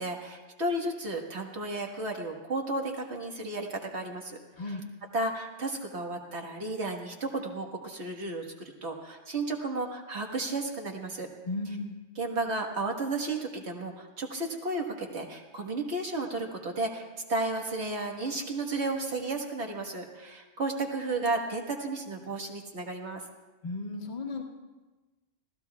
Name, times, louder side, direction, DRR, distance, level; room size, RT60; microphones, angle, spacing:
voice 1, 0.0-4.4 4.7-4.8 5.1-8.5 8.8-11.3 12.2-23.2, right 2 dB, 60° right, 2 dB, 1.8 m, -33 dB
voice 2, 11.5-12.0 23.6-24.4, left 2 dB, 40° left, 0 dB, 1.5 m, -35 dB
29.0 x 16.5 x 2.3 m, 1.2 s
omnidirectional pair, 1.2 m